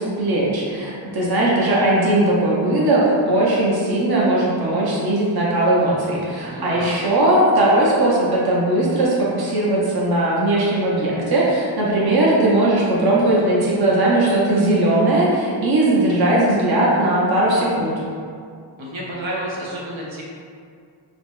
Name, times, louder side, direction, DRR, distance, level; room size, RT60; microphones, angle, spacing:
voice 1, 0.0-17.9, right 1 dB, 55° right, -5 dB, 0.8 m, -18 dB
voice 2, 6.4-7.0 18.8-20.2, right 1 dB, 90° right, -5 dB, 1.0 m, -30 dB
6.2 x 2.2 x 3.1 m, 2.3 s
wide cardioid pair, 110°, 46 cm